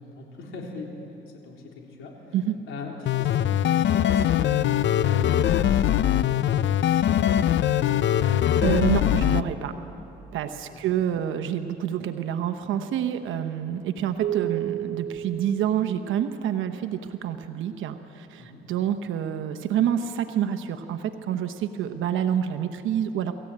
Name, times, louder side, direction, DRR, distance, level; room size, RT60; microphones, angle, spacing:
voice 1, 0.2-2.4 2.7-4.5 4.9-8.3 10.7-10.9 18.4-18.6, left 3 dB, 85° left, 0 dB, 3.7 m, -41 dB
sound 1, 3.1-9.4, left 11 dB, 70° left, 0.6 m, -22 dB
voice 2, 8.6-9.7 10.3-23.3, right 9 dB, 80° right, 8 dB, 1.0 m, -27 dB
sound 2, 14.2-16.8, right 11 dB, 60° right, 1.3 m, -32 dB
26.5 x 15.0 x 8.7 m, 3.0 s
cardioid pair, 90°, 20 cm